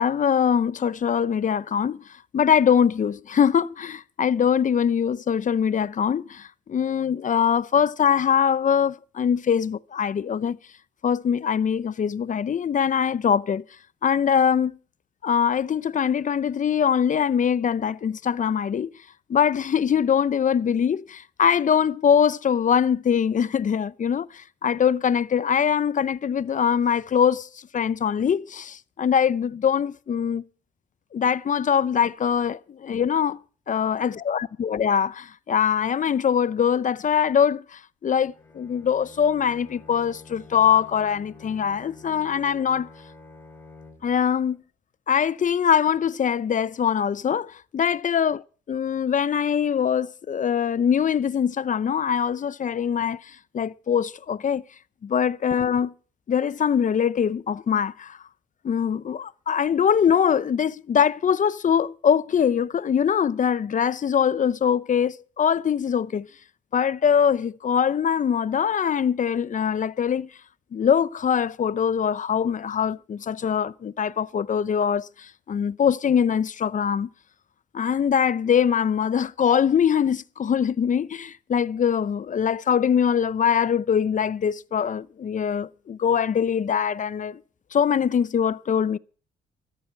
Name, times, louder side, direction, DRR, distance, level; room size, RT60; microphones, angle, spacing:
voice 1, 0.0-2.0 2.3-10.6 11.0-13.6 14.0-14.7 15.2-18.9 19.3-27.5 27.7-30.4 31.1-33.4 33.7-42.9 44.0-44.6 45.1-48.4 48.7-54.6 55.0-55.9 56.3-58.2 58.6-66.3 66.7-70.3 70.7-77.1 77.7-87.4 87.7-89.0, left 8 dB, 40° left, 0.6 m, -23 dB
Bowed string instrument, 38.3-44.3, left 4 dB, 10° left, 6.7 m, -48 dB
14.0 x 13.5 x 4.5 m
cardioid pair, 90°, 20 cm